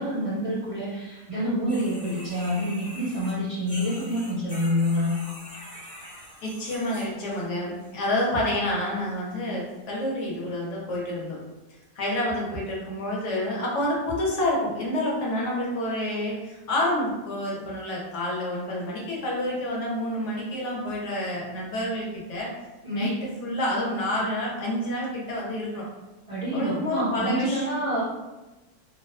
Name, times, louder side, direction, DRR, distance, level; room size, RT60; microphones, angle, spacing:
voice 1, 0.0-5.1 22.8-23.1 26.3-28.0, equal, 60° right, -11 dB, 0.3 m, -27 dB
sound 1, 1.7-7.4 7.8-8.3 9.0-9.1 9.7-9.8, equal, 20° left, 0.7 m, -44 dB
voice 2, 6.4-11.4 11.9-22.5 22.9-23.1 23.4-25.8 26.5-27.7, left 1 dB, 60° left, -3 dB, 0.9 m, -28 dB
2.6 x 2.2 x 2.3 m, 1.1 s
omnidirectional pair, 1.6 m